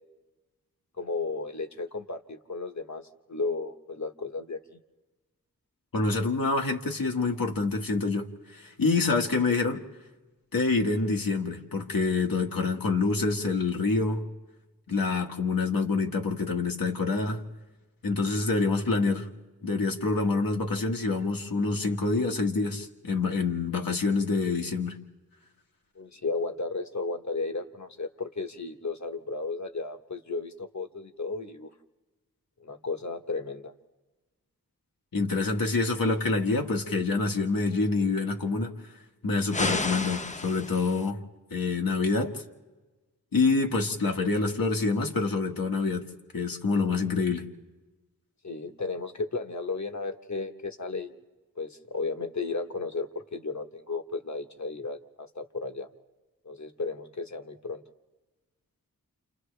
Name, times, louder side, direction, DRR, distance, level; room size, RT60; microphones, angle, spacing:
voice 1, 1.0-4.8 25.9-31.7 32.6-33.7 48.4-51.1 51.6-55.9 56.4-57.8, left 3 dB, 55° left, 6 dB, 1.3 m, -34 dB
voice 2, 5.9-9.8 10.5-14.3 14.9-17.4 18.0-19.3 19.6-25.0 35.1-38.7 39.2-41.2 41.5-42.4 43.3-46.1 46.3-47.4, left 3 dB, 80° left, 2 dB, 1.8 m, -26 dB
sound 1, 39.5-41.1, left 3 dB, 20° left, 0.6 m, -31 dB
29.5 x 28.0 x 3.4 m, 1.2 s
wide cardioid pair, 85°, 34 cm